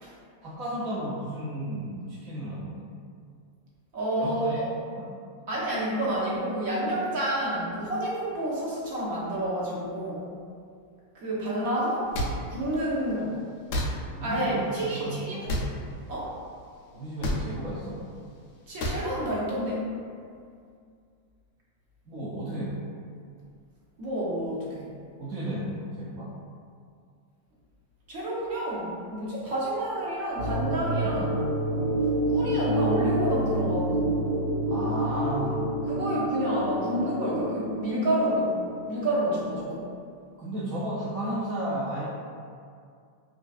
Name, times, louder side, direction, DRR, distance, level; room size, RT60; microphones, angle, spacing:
voice 1, 0.4-2.9 4.2-4.6 4.9-5.2 14.2-15.3 16.9-18.1 22.1-22.9 25.2-26.4 31.0-31.2 34.7-35.6 40.4-42.1, right 1 dB, 30° right, -7 dB, 0.3 m, -33 dB
voice 2, 3.9-4.7 5.5-10.3 11.1-12.1 12.5-13.4 14.2-15.5 16.1-16.3 18.7-19.9 24.0-24.9 28.1-31.3 32.3-34.3 35.9-38.6 38.9-39.9, right 1 dB, 50° right, -7 dB, 0.7 m, -29 dB
sound 1, 12.1-12.3 13.7-13.9 15.5-15.7 17.2-17.4 18.8-19.0, left 1 dB, 45° left, 0.3 m, -27 dB
sound 2, 30.4-39.5, right 1 dB, 65° right, 1.2 m, -28 dB
2.3 x 2.3 x 2.4 m, 2.2 s
supercardioid pair, 165°, 0 cm